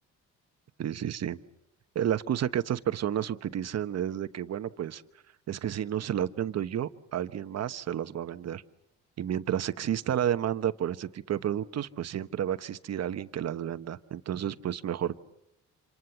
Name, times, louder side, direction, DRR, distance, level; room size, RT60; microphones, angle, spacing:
voice 1, 0.8-1.4 1.9-5.0 5.5-8.6 9.2-15.1, right 10 dB, 60° right, 11 dB, 1.1 m, -31 dB
27.0 x 27.0 x 7.1 m, 0.84 s
cardioid pair, 90°, 30 cm